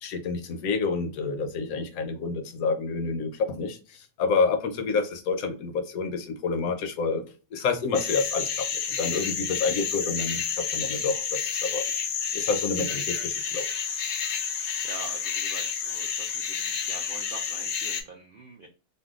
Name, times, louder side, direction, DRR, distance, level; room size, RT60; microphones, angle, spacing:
voice 1, 0.0-3.8 4.2-7.2 7.5-8.5 9.0-10.4 10.7-11.8 12.3-13.6, left 4 dB, 70° left, 6 dB, 1.0 m, -28 dB
sound 1, 7.9-18.0, left 7 dB, 90° left, 1.2 m, -30 dB
voice 2, 14.8-18.7, right 3 dB, 80° right, 1 dB, 0.4 m, -44 dB
2.7 x 2.3 x 3.5 m, 0.34 s
omnidirectional pair, 1.6 m